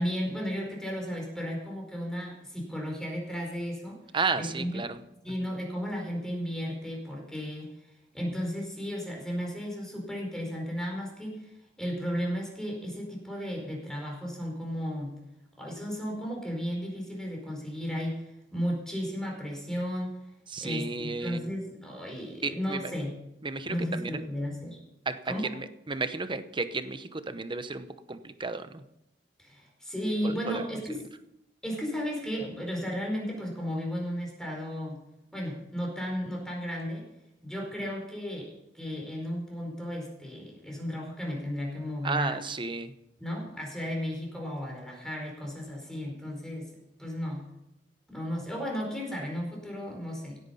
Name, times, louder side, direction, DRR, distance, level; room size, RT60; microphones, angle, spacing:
voice 1, 0.0-4.0 4.3-4.9 5.2-7.7 8.1-11.5 11.8-15.1 15.6-20.1 20.6-23.1 23.7-24.8 25.3-25.4 29.4-30.9 31.6-35.0 35.3-37.1 37.4-42.4 43.2-46.7 47.0-47.4 48.1-50.4, equal, 5° left, 0 dB, 4.6 m, -34 dB
voice 2, 4.1-5.0 5.4-5.5 20.5-21.5 22.4-22.9 23.4-24.2 25.1-28.8 30.2-30.6 30.9-31.0 42.0-42.9, right 3 dB, 30° right, 11 dB, 0.9 m, -33 dB
16.5 x 9.3 x 5.7 m, 0.85 s
head